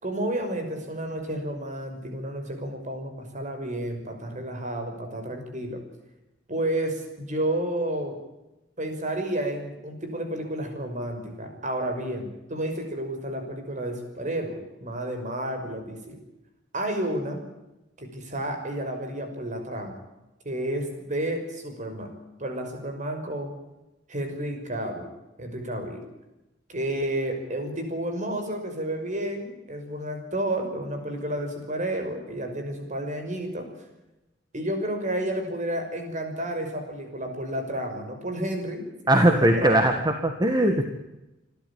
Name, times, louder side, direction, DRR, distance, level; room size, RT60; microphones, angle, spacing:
voice 1, 0.0-5.8 6.5-8.2 8.8-16.2 16.7-17.4 18.0-20.0 20.4-23.5 24.1-25.1 25.4-26.1 26.7-33.7 34.5-39.8, right 1 dB, 40° right, 5 dB, 5.9 m, -31 dB
voice 2, 39.1-40.8, right 1 dB, 20° right, 5 dB, 1.9 m, -20 dB
27.5 x 13.0 x 8.7 m, 0.98 s
head